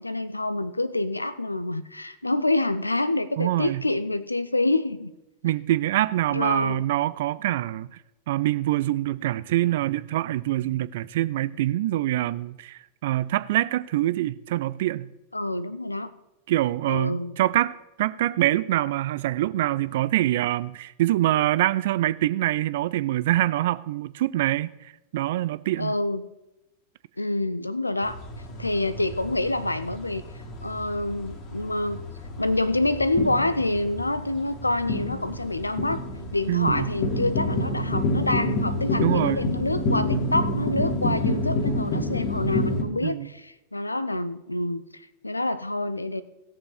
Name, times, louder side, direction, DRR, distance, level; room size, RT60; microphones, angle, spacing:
voice 1, 0.0-5.1 6.3-6.8 15.3-16.1 16.9-17.4 25.8-26.2 27.2-28.2 28.6-30.3 30.6-32.0 32.4-36.0 36.3-46.2, left 2 dB, 85° left, 0.6 m, -27 dB
voice 2, 3.4-3.8 5.4-7.9 8.3-15.1 16.5-26.0 36.5-36.9 39.0-39.5 43.0-43.3, right 14 dB, 55° right, 0.4 m, -25 dB
sound 1, 28.0-42.8, left 1 dB, 40° left, 2.1 m, -29 dB
16.5 x 6.8 x 5.0 m
figure-of-eight pair, 90°, 0 cm